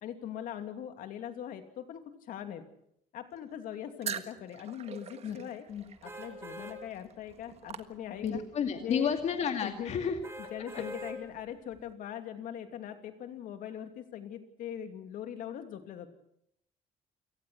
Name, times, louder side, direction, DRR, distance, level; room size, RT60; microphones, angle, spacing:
voice 1, 0.0-2.7 3.1-5.7 6.0-8.4 8.8-9.1 9.6-10.0 10.4-16.1, left 9 dB, 70° left, 7 dB, 2.8 m, -41 dB
sound 1, 4.0-8.5, right 8 dB, 45° right, 1.6 m, -43 dB
sound 2, 6.0-6.8 7.3-7.4 10.2-11.2 11.7-11.8, equal, 15° right, 3.8 m, -43 dB
voice 2, 8.2-10.2 10.6-10.8, left 7 dB, 50° left, 5 dB, 2.3 m, -31 dB
29.0 x 18.0 x 6.4 m, 0.73 s
cardioid pair, 145°, 15 cm